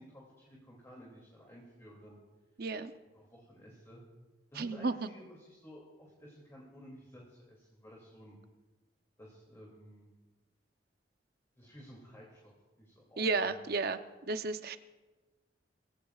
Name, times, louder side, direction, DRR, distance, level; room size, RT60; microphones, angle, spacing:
voice 1, 0.0-2.2 3.1-4.0 4.5-8.4 9.2-10.1 11.6-12.5 12.8-13.6, equal, 15° left, -3 dB, 2.7 m, -54 dB
voice 2, 2.6-2.9 4.6-5.1 13.2-14.0 14.3-14.8, right 3 dB, 55° right, 10 dB, 0.7 m, -32 dB
22.5 x 16.0 x 2.4 m, 1.2 s
head